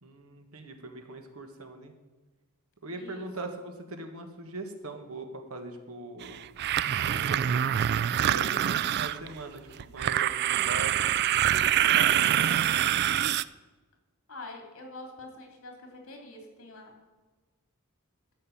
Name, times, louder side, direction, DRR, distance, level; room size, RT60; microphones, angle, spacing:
voice 1, 0.0-1.9 2.8-6.4 6.9-7.5 8.2-12.7, right 2 dB, 75° right, 5 dB, 1.6 m, -41 dB
sound 1, 6.2-9.4 9.8-13.4, right 11 dB, 50° right, 0.3 m, -25 dB
voice 2, 14.3-16.9, left 2 dB, 70° left, 2 dB, 3.0 m, -45 dB
13.0 x 5.5 x 8.6 m, 1.2 s
head